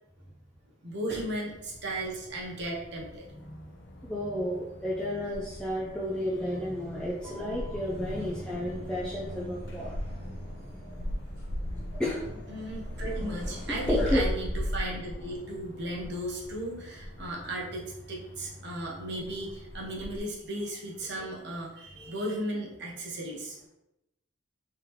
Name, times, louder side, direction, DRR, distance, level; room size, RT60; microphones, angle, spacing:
voice 1, 0.8-3.2 12.5-23.6, right 1 dB, 55° right, -3 dB, 0.9 m, -36 dB
sound 1, 1.5-20.2, equal, 60° left, 0.6 m, -39 dB
voice 2, 4.0-9.9 12.0-12.2 13.7-14.4 21.2-21.3, left 1 dB, 5° left, -6 dB, 0.4 m, -32 dB
sound 2, 7.0-14.5, left 1 dB, 15° right, 1.3 m, -46 dB
3.5 x 3.2 x 3.0 m, 0.91 s
head